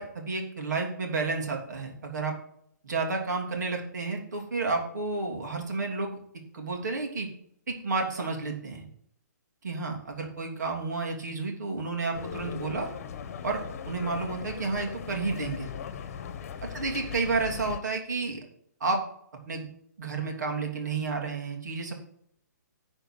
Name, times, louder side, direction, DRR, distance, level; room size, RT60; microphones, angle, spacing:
voice 1, 0.0-2.3 2.8-6.2 6.5-7.3 7.7-8.9 9.6-12.9 13.4-15.7 16.7-18.4 18.8-19.0 19.5-19.7 20.0-21.9, right 4 dB, 70° right, 1 dB, 3.0 m, -31 dB
sound 1, 12.1-17.8, left 7 dB, 50° left, 1.1 m, -39 dB
10.0 x 4.5 x 7.6 m, 0.68 s
figure-of-eight pair, 135°, 10 cm